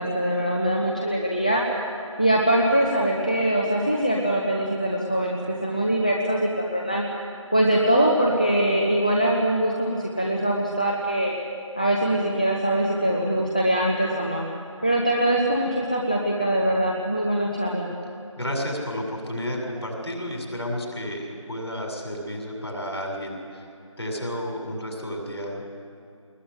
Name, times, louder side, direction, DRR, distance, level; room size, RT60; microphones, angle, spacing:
voice 1, 0.0-1.6 2.2-7.0 7.5-11.3 11.8-14.4 14.8-17.9, right 1 dB, 15° left, -2 dB, 0.9 m, -23 dB
voice 2, 18.3-23.7 24.0-25.7, equal, 55° left, 0 dB, 6.9 m, -31 dB
21.5 x 20.5 x 9.4 m, 2.5 s
figure-of-eight pair, 175°, 17 cm